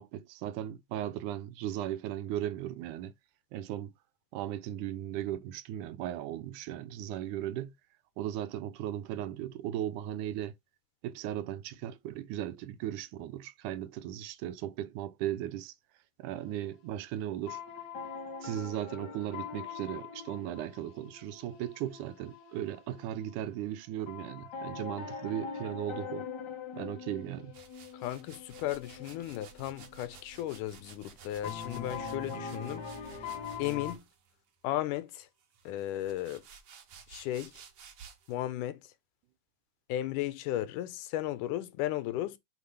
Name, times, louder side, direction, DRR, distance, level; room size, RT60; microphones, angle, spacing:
voice 1, 0.0-3.1 3.5-3.9 4.3-7.7 8.2-10.5 11.0-15.7 16.2-17.6 18.4-26.3 26.7-27.6, right 12 dB, 80° right, 2.1 m, -37 dB
sound 1, 16.4-17.1 17.5-23.7 24.1-30.6 31.4-34.0, left 5 dB, 45° left, 1.5 m, -43 dB
sound 2, 27.5-34.3 35.1-38.4, right 6 dB, 60° right, 1.3 m, -54 dB
voice 2, 27.9-33.3 33.6-34.1 34.6-35.3 35.7-36.4 37.1-37.6 38.3-38.9 39.9-42.4, left 13 dB, 85° left, 2.2 m, -35 dB
6.9 x 3.7 x 5.6 m
omnidirectional pair, 3.7 m